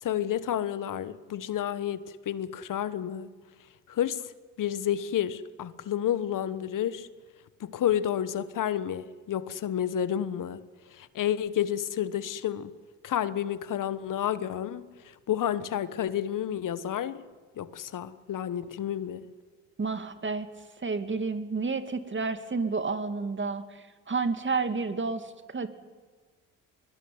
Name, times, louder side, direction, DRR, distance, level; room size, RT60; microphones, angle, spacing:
voice 1, 0.0-3.3 3.9-4.3 4.6-7.1 7.6-10.6 10.9-12.7 13.0-17.3 17.6-19.3, left 10 dB, 65° left, 1.3 m, -30 dB
voice 2, 19.8-20.5 20.8-25.7, right 4 dB, 35° right, 2.4 m, -30 dB
21.5 x 21.0 x 9.6 m
supercardioid pair, 60°, 35 cm